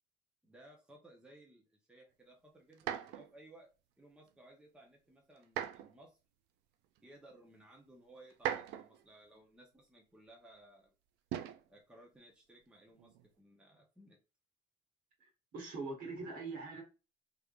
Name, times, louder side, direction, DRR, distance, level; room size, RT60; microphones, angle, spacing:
voice 1, 0.4-3.7 4.0-6.2 7.0-10.9 11.7-14.2, right 1 dB, 5° right, 0.7 m, -60 dB
sound 1, 2.7-3.3 5.4-6.0 7.0-7.1 8.3-9.0 11.3-11.7 12.9-13.3, right 10 dB, 85° right, 0.4 m, -39 dB
voice 2, 15.5-16.8, right 3 dB, 60° right, 1.5 m, -42 dB
3.5 x 3.3 x 2.4 m
cardioid pair, 155°, 17 cm